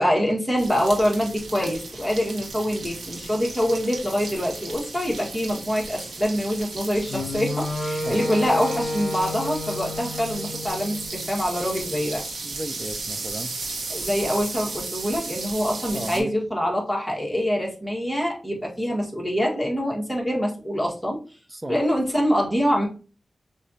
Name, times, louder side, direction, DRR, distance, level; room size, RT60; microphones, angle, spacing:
voice 1, 0.0-12.2 13.9-21.2 21.7-22.9, equal, 5° left, 1.9 m, -25 dB
sound 1, 0.6-16.2, right 3 dB, 90° right, 1.3 m, -35 dB
Wind instrument woodwind instrument, 7.1-11.3, left 2 dB, 45° left, 1.5 m, -31 dB
voice 2, 12.4-13.6 15.9-16.3 21.5-21.8, right 1 dB, 20° right, 0.6 m, -34 dB
6.5 x 2.6 x 2.9 m
cardioid pair, 65°, 0 cm